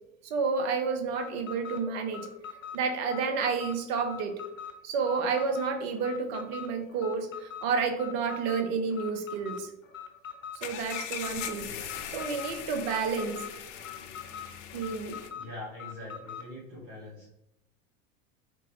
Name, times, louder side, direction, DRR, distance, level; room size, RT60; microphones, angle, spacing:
voice 1, 0.2-2.3 2.7-4.3 4.8-9.7 10.6-11.7 12.1-13.4 14.7-15.2, right 5 dB, 55° right, 7 dB, 0.7 m, -30 dB
Alarm, 1.0-16.5, left 8 dB, 90° left, 0.6 m, -43 dB
sound 1, 10.6-15.3, left 9 dB, 45° left, 0.5 m, -40 dB
voice 2, 11.6-12.2 15.3-17.3, left 1 dB, 35° right, -7 dB, 1.4 m, -44 dB
3.6 x 2.9 x 3.0 m, 0.84 s
figure-of-eight pair, 75°, 39 cm